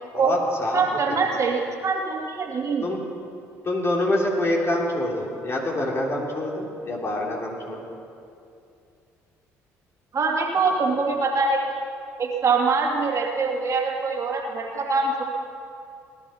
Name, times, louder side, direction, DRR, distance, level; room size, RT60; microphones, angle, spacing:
voice 1, 0.1-0.8 1.2-1.3 2.8-3.0 3.6-7.9, left 1 dB, 35° left, -1 dB, 3.2 m, -26 dB
voice 2, 0.7-2.9 10.1-11.6 12.2-15.2, right 4 dB, 45° right, 0 dB, 2.4 m, -24 dB
19.0 x 11.5 x 5.7 m, 2.5 s
hypercardioid pair, 60°, 7 cm